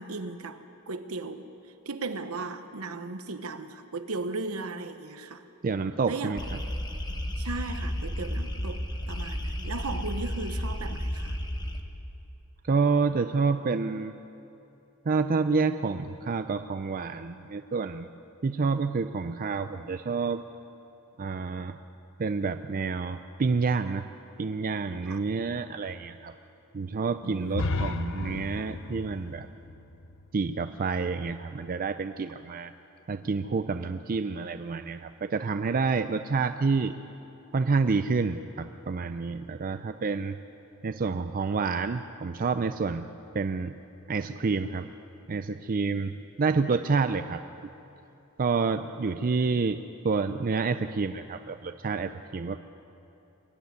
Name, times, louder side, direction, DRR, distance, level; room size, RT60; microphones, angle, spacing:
voice 1, 0.0-1.5 1.8-5.4 6.1-6.3 7.4-11.4 25.0-25.3 27.2-27.7, right 3 dB, 70° right, 9 dB, 1.0 m, -36 dB
voice 2, 5.6-6.4 12.7-14.1 15.1-18.1 18.4-20.4 21.2-21.8 22.2-24.1 24.4-26.3 26.7-29.5 30.3-32.7 33.1-36.9 37.5-40.4 40.8-43.1 43.3-43.7 44.1-44.9 45.3-47.4 48.4-52.6, right 4 dB, 40° right, 9 dB, 0.5 m, -28 dB
sound 1, 6.4-11.8, equal, 20° left, 1.3 m, -32 dB
sound 2, 27.5-31.3, left 2 dB, 60° left, 0.9 m, -34 dB
23.5 x 12.0 x 9.6 m, 2.8 s
head